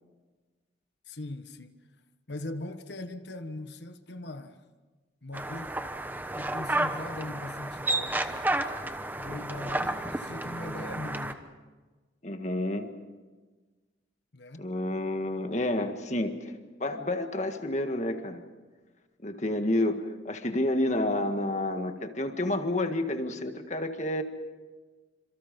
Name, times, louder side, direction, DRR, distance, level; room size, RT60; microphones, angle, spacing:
voice 1, 1.1-1.8 2.3-4.7 5.2-5.8 6.3-8.6 9.2-11.4 14.3-14.7, left 1 dB, 65° left, 1.3 m, -40 dB
sound 1, 5.3-11.3, right 2 dB, 10° right, 1.0 m, -31 dB
voice 2, 12.2-12.9 14.6-16.5 16.8-18.4 19.2-24.2, left 1 dB, 40° left, 1.8 m, -29 dB
28.5 x 26.5 x 5.4 m
head